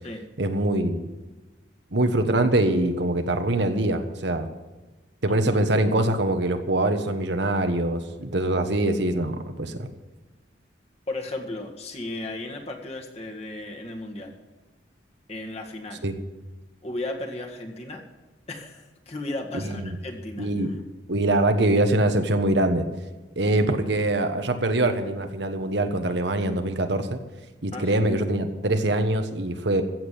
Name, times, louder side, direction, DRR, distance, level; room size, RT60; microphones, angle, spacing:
voice 1, 0.4-1.1 1.9-4.5 5.2-9.9 16.0-16.2 19.5-20.0 20.4-20.7 21.1-22.9 23.4-27.2 27.6-29.8, right 1 dB, 65° right, 7 dB, 1.3 m, -23 dB
voice 2, 11.1-14.3 15.3-16.0 16.8-18.0 18.5-20.5 27.7-28.0, left 2 dB, 35° left, 1 dB, 1.9 m, -35 dB
15.5 x 7.6 x 8.4 m, 1.2 s
head